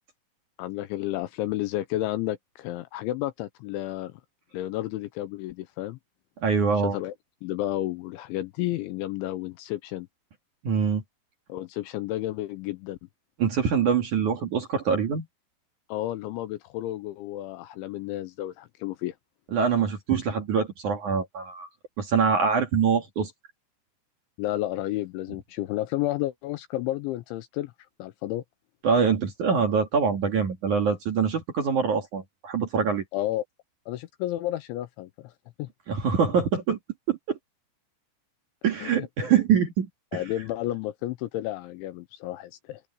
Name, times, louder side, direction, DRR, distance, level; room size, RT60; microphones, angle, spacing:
voice 1, 0.6-4.2 4.5-6.0 6.9-7.1 7.4-10.1 11.5-13.0 15.9-19.1 24.4-27.7 28.0-28.4 33.1-33.4 33.9-35.3 35.6-35.7 38.8-39.1 40.1-42.8, left 15 dB, 85° left, 2.9 m, -31 dB
voice 2, 6.4-7.0 10.6-11.0 13.4-15.3 19.5-21.7 22.0-23.3 28.8-33.0 35.9-36.8 37.1-37.4 38.6-40.2, right 6 dB, 50° right, 2.7 m, -24 dB
open air
omnidirectional pair, 5.9 m